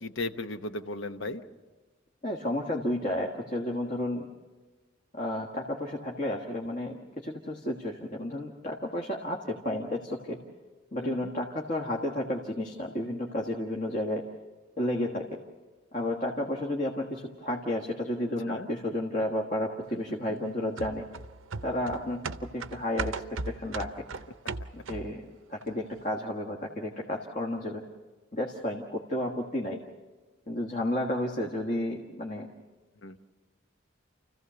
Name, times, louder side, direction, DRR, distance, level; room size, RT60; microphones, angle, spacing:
voice 1, 0.0-1.4 11.0-11.3 18.5-18.7 19.9-20.0 33.0-33.2, left 2 dB, 70° left, 9 dB, 1.0 m, -36 dB
voice 2, 2.2-4.3 5.1-10.4 10.9-14.2 14.8-15.2 15.9-21.0 21.6-24.2 24.7-25.2 25.5-27.8 28.3-29.8 30.5-32.5, left 1 dB, 40° left, 0 dB, 1.5 m, -32 dB
sound 1, 20.8-25.2 25.6-25.7, right 4 dB, 85° right, 0.7 m, -37 dB
29.0 x 15.0 x 6.9 m, 1.3 s
head